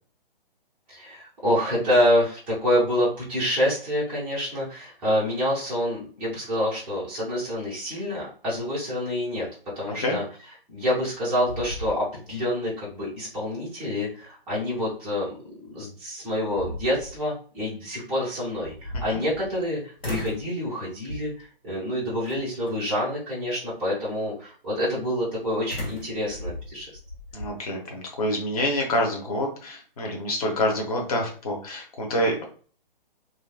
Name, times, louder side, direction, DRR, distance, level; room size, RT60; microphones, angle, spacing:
voice 1, 0.9-9.5 9.8-10.2 10.7-15.3 15.7-26.9, equal, 5° right, -9 dB, 0.4 m, -27 dB
voice 2, 9.9-10.2 18.9-19.2 27.3-32.4, left 1 dB, 40° left, 1 dB, 1.0 m, -27 dB
sound 1, 10.8-11.2 11.5-12.5 12.9-13.0 15.6-15.7 16.3-17.2 18.5-19.7 20.0-20.5 21.1-21.5 22.2-22.7 25.7-27.5, left 1 dB, 85° left, 1.2 m, -36 dB
3.1 x 2.5 x 2.3 m, 0.43 s
figure-of-eight pair, 130°, 29 cm